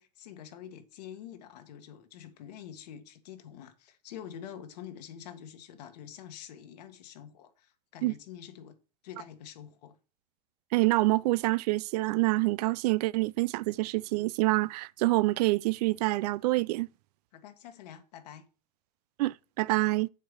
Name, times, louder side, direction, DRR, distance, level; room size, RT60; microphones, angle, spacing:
voice 1, 0.0-8.8 9.0-9.9 17.3-18.5, left 9 dB, 75° left, 1.6 m, -46 dB
voice 2, 10.7-16.9 19.2-20.1, right 20 dB, 70° right, 0.4 m, -26 dB
7.3 x 4.7 x 6.7 m
hypercardioid pair, 110°, 21 cm